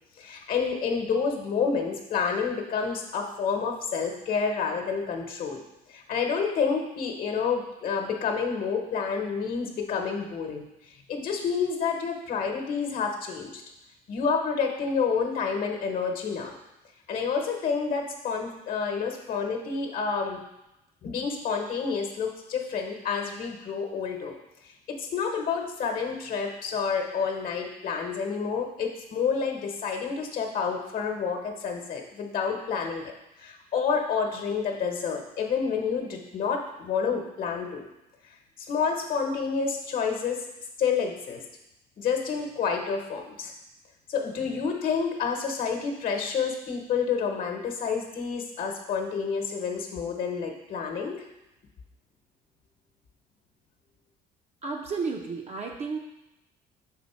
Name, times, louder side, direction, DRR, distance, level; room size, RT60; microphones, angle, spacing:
voice 1, 0.2-5.6 5.9-13.6 14.1-16.5 17.1-20.4 21.0-24.4 24.6-33.1 33.4-37.9 38.7-40.4 40.8-41.4 42.0-43.5 44.1-51.3, left 5 dB, 55° left, 3 dB, 1.0 m, -29 dB
voice 2, 54.6-56.0, right 4 dB, 40° right, 1 dB, 0.6 m, -32 dB
5.3 x 4.3 x 4.3 m, 0.92 s
cardioid pair, 110°, 17 cm